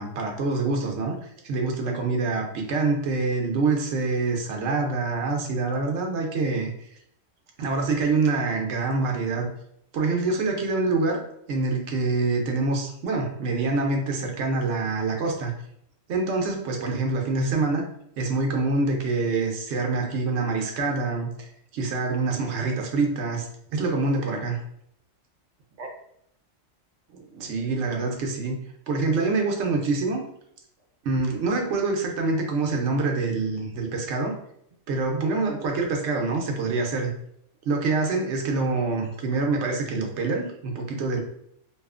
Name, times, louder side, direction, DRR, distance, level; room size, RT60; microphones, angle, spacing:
voice 1, 0.0-6.9 7.6-9.5 9.9-15.5 16.1-17.9 18.2-24.6 25.8-25.9 27.1-28.6 28.9-30.2 31.0-34.3 34.9-37.1 37.7-41.2, right 3 dB, 70° right, 2 dB, 0.8 m, -26 dB
2.7 x 2.3 x 2.4 m, 0.71 s
omnidirectional pair, 1.3 m